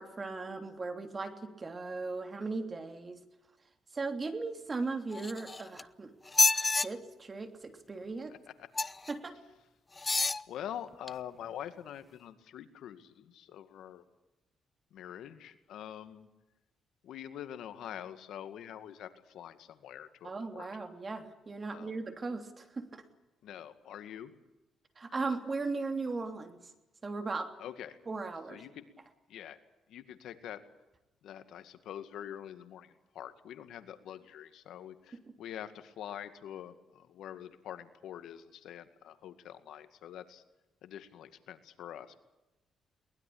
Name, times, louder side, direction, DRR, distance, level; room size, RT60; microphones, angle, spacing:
voice 1, 0.0-3.2 3.9-6.1 6.8-8.3 9.1-9.4 20.2-23.0 25.0-26.6 27.0-27.5 28.1-28.6, right 3 dB, 30° right, 7 dB, 3.1 m, -37 dB
sound 1, 5.1-5.8 6.3-6.9 8.8-9.1 10.0-10.4 11.1-11.2, left 3 dB, 25° left, 0.8 m, -28 dB
voice 2, 8.3-8.7 10.5-14.0 14.9-16.3 17.0-20.7 21.7-22.0 23.4-24.3 27.6-28.0 28.5-28.8 29.3-29.6 29.9-30.6 31.2-40.4 40.8-42.2, left 10 dB, 80° left, 10 dB, 2.0 m, -45 dB
22.5 x 20.0 x 8.7 m, 1.0 s
cardioid pair, 90°, 0 cm